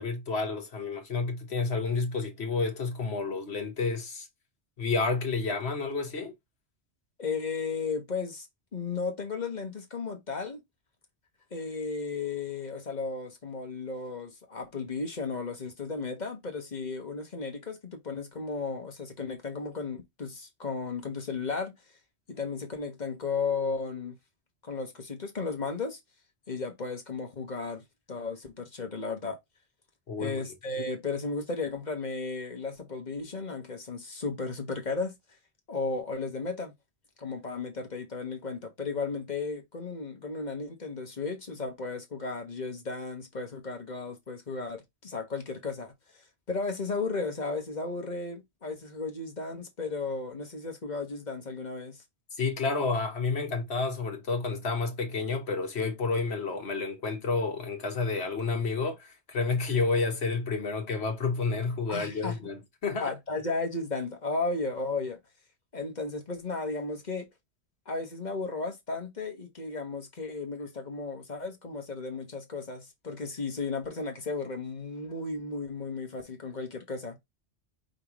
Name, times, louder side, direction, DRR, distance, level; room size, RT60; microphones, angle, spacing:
voice 1, 0.0-4.3 4.8-6.3 30.1-30.4 52.4-63.1, left 4 dB, 75° left, 1.6 m, -30 dB
voice 2, 7.2-8.5 8.7-10.6 11.5-21.7 22.3-24.2 24.6-26.0 26.5-29.4 30.2-35.1 35.7-36.7 37.2-46.2 46.5-52.0 61.9-62.4 63.0-65.2 65.7-67.3 67.9-77.2, left 4 dB, 45° left, 1.3 m, -34 dB
5.3 x 3.3 x 3.0 m
omnidirectional pair, 1.1 m